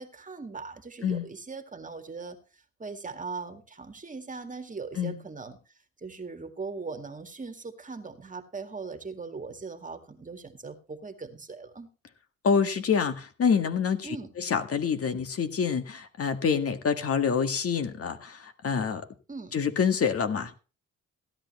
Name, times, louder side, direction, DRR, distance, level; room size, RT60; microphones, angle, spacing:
voice 1, 0.0-2.4 2.8-5.6 6.0-11.9 14.0-14.3 19.3-19.5, right 4 dB, 25° right, 2.0 m, -39 dB
voice 2, 12.4-19.0 19.5-20.5, left 6 dB, 50° left, 1.8 m, -27 dB
16.0 x 11.0 x 3.1 m
cardioid pair, 90°, 30 cm